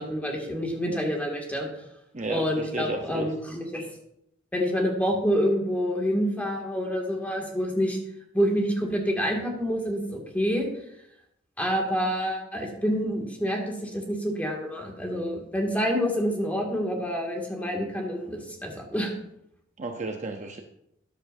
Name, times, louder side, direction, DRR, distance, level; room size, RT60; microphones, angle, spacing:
voice 1, 0.0-1.7 2.3-3.8 4.5-8.0 8.3-10.7 11.6-19.1, equal, 10° left, 0 dB, 2.2 m, -27 dB
voice 2, 2.1-3.3 19.8-20.6, right 2 dB, 40° right, 4 dB, 0.8 m, -32 dB
13.0 x 10.5 x 2.7 m, 0.78 s
head